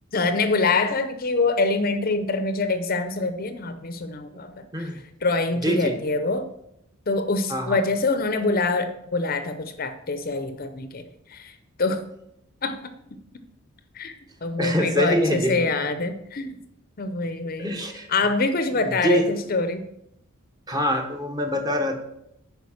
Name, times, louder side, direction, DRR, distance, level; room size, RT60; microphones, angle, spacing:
voice 1, 0.1-4.9 5.2-6.4 7.1-11.0 11.3-11.5 11.8-12.0 12.6-12.9 13.9-14.2 14.4-16.6 17.0-17.7 18.1-19.8, left 3 dB, 45° left, 10 dB, 0.7 m, -25 dB
voice 2, 5.6-6.0 7.5-7.8 14.6-15.7 17.6-18.1 18.7-19.3 20.7-22.0, equal, 20° right, 4 dB, 1.1 m, -25 dB
9.5 x 4.9 x 6.4 m, 0.78 s
head